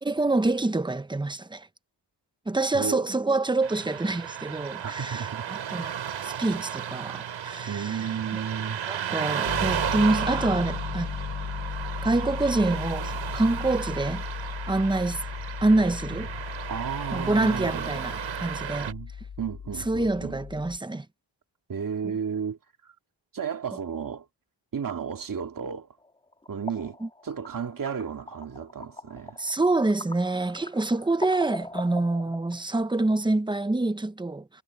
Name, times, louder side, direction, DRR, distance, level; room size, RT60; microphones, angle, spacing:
voice 1, 0.0-1.7 2.5-5.9 6.2-8.1 8.3-8.4 8.9-11.1 12.0-14.2 14.7-15.2 15.6-16.3 17.1-18.9 19.9-21.0 27.0-27.1 29.4-34.5, right 2 dB, 10° right, 0.9 m, -26 dB
voice 2, 2.6-3.0 4.8-5.4 7.7-8.8 16.7-17.9 18.9-19.1 19.4-20.4 21.7-22.9 23.3-24.3 24.7-25.9 26.5-27.0 27.2-29.4, right 7 dB, 45° right, 2.1 m, -33 dB
Car passing by / Traffic noise roadway noise, 3.6-18.9, right 9 dB, 90° right, 3.7 m, -34 dB
Piano, 9.5-20.8, left 7 dB, 50° left, 1.3 m, -36 dB
sound 1, 26.0-32.6, left 1 dB, 10° left, 2.6 m, -41 dB
wide cardioid pair, 110°, 44 cm